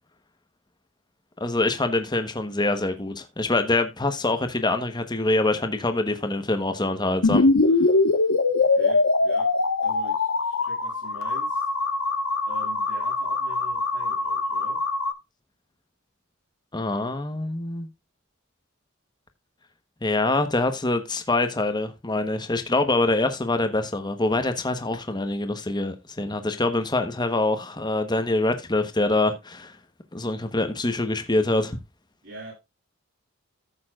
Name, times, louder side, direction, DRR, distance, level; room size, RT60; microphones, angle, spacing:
voice 1, 1.4-7.4 16.7-17.9 20.0-29.8 30.1-31.8, left 2 dB, 20° left, 1.1 m, -25 dB
sound 1, 7.2-15.1, left 3 dB, 90° left, 1.3 m, -23 dB
voice 2, 8.6-9.5 9.8-11.7 12.5-14.8 32.2-32.5, right 1 dB, 65° right, 6.8 m, -43 dB
14.5 x 6.9 x 2.4 m
head